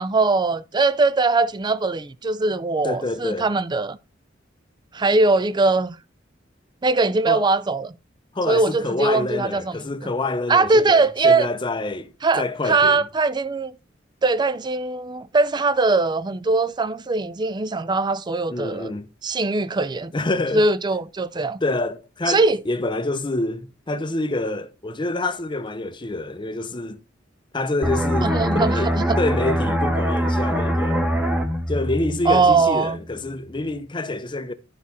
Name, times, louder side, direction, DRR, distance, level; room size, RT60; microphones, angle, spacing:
voice 1, 0.0-4.0 4.9-6.0 6.8-7.9 8.5-10.1 10.5-11.5 12.2-13.7 14.2-18.9 19.2-20.1 20.5-21.6 22.3-22.6 28.2-29.2 32.3-33.0, right 3 dB, 25° right, 0.4 m, -21 dB
voice 2, 2.8-3.5 7.3-7.5 8.3-12.1 12.4-13.1 18.5-19.1 20.1-20.6 21.6-27.0 27.5-31.1 31.7-34.5, left 2 dB, 25° left, 0.7 m, -27 dB
sound 1, 27.8-33.2 33.5-33.8, equal, 5° right, 1.1 m, -23 dB
10.5 x 4.8 x 4.1 m
head